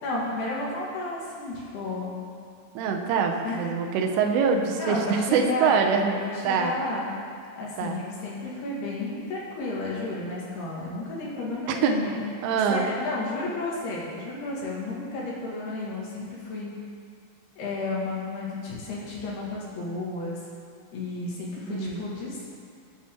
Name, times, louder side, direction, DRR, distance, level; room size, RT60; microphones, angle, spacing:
voice 1, 0.0-2.2 3.4-3.6 4.8-5.8 6.1-7.1 7.6-12.2 12.7-16.7 17.6-20.4 20.9-22.5, left 2 dB, 60° left, -5 dB, 3.8 m, -32 dB
voice 2, 2.8-6.2 6.4-6.7 7.8-8.0 11.8-11.9 12.4-12.9 21.7-22.0, right 6 dB, 85° right, 3 dB, 3.5 m, -24 dB
24.0 x 9.2 x 3.8 m, 2.3 s
omnidirectional pair, 5.6 m